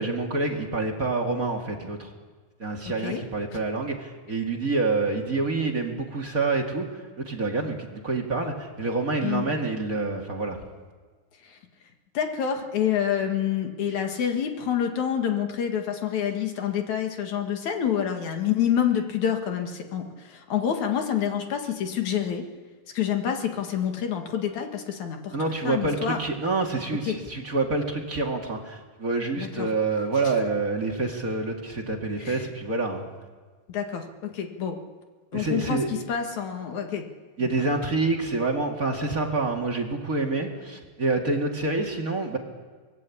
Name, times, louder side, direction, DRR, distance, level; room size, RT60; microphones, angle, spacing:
voice 1, 0.0-2.1 2.6-10.6 25.3-33.0 35.3-35.9 37.4-42.4, right 3 dB, 30° right, 1 dB, 2.1 m, -27 dB
voice 2, 2.9-3.2 3.5-3.6 9.2-9.5 11.4-11.6 12.1-22.4 22.9-25.4 25.6-26.2 27.0-27.2 29.4-29.7 32.2-32.4 33.7-34.8 35.3-37.1 37.4-37.5, left 9 dB, 55° left, 4 dB, 3.0 m, -27 dB
24.0 x 20.0 x 8.6 m, 1.4 s
omnidirectional pair, 4.3 m